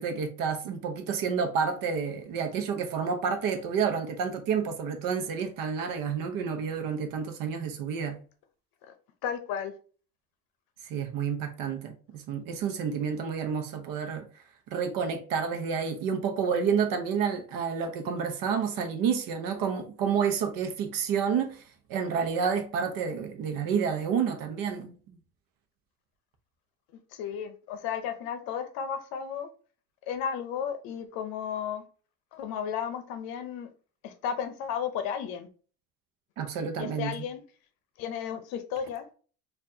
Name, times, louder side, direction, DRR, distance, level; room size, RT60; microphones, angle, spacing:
voice 1, 0.0-8.2 10.8-24.9 36.4-37.3, right 6 dB, 55° right, 0.8 m, -29 dB
voice 2, 9.2-9.7 27.1-29.5 30.1-31.8 32.3-33.7 34.0-35.5 36.8-37.4 38.0-39.1, left 8 dB, 60° left, 0.7 m, -33 dB
4.3 x 2.5 x 2.7 m
cardioid pair, 140°, 41 cm